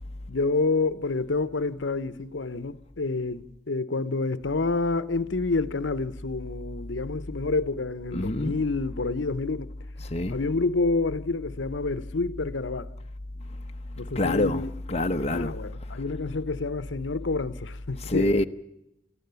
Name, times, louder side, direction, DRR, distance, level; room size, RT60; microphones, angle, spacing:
voice 1, 0.3-9.7 10.3-12.9 14.0-14.7 15.3-18.3, left 3 dB, 80° left, 0.9 m, -28 dB
voice 2, 8.1-8.6 10.0-10.4 14.1-15.9 18.0-18.4, left 1 dB, 35° left, 0.8 m, -27 dB
28.0 x 14.0 x 6.9 m
head